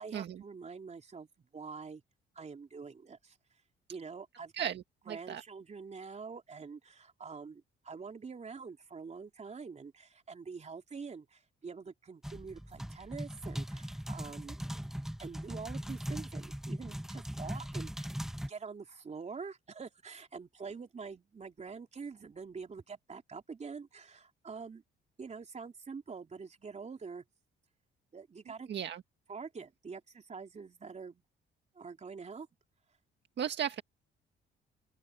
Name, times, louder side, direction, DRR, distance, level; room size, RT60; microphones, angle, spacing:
voice 1, 0.0-2.0 2.4-3.4 3.9-4.7 5.1-14.6 15.2-18.1 18.5-24.8 25.2-27.2 28.1-28.7 29.3-31.2 31.8-32.5, right 5 dB, 35° right, 3.4 m, -45 dB
voice 2, 5.1-5.4 28.7-29.0 33.4-33.8, right 9 dB, 60° right, 1.7 m, -35 dB
sound 1, 12.2-18.5, equal, ahead, 1.3 m, -40 dB
cardioid pair, 90°, 20 cm